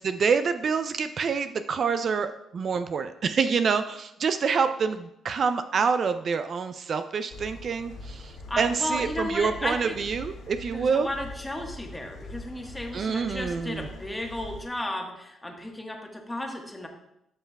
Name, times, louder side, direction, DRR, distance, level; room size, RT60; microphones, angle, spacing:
voice 1, 0.0-11.1 12.9-13.9, right 5 dB, 50° right, 10 dB, 0.4 m, -27 dB
sound 1, 7.3-14.7, left 2 dB, 75° left, 1.4 m, -43 dB
voice 2, 8.5-10.0 10.7-16.9, left 1 dB, 10° left, 2 dB, 1.3 m, -34 dB
11.5 x 5.6 x 2.3 m, 0.82 s
cardioid pair, 90°, 0 cm